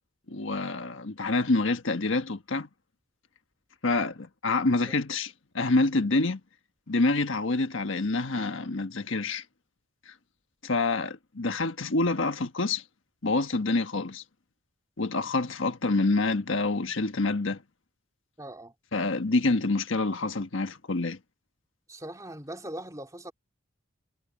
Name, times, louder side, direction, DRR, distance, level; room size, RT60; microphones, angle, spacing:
voice 1, 0.3-2.7 3.8-6.4 6.9-9.4 10.1-10.2 10.6-12.8 13.2-14.2 15.0-17.6 18.9-21.2, left 3 dB, 70° left, 1.4 m, -27 dB
voice 2, 18.4-18.7 21.9-23.3, right 1 dB, 15° right, 2.8 m, -40 dB
head